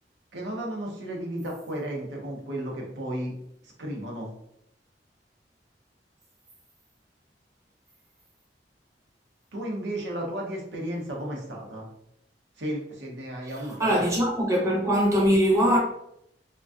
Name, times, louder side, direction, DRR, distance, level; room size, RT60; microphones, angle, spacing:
voice 1, 0.3-3.3 3.6-4.3 9.5-11.9 12.6-14.0, right 1 dB, 80° right, 0.7 m, -33 dB
voice 2, 13.8-15.8, equal, 15° right, 0.6 m, -21 dB
2.5 x 2.2 x 2.3 m
head